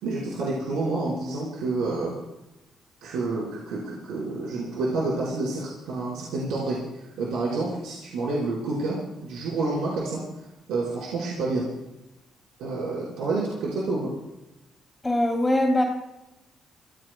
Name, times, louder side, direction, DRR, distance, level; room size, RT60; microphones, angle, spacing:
voice 1, 0.0-2.1 3.0-6.8 7.2-10.2 10.7-11.6 12.6-14.1, right 3 dB, 90° right, -6 dB, 4.8 m, -28 dB
voice 2, 15.0-15.8, left 1 dB, 15° left, 0 dB, 3.3 m, -22 dB
28.5 x 16.0 x 2.3 m, 0.95 s
cardioid pair, 90°, 0 cm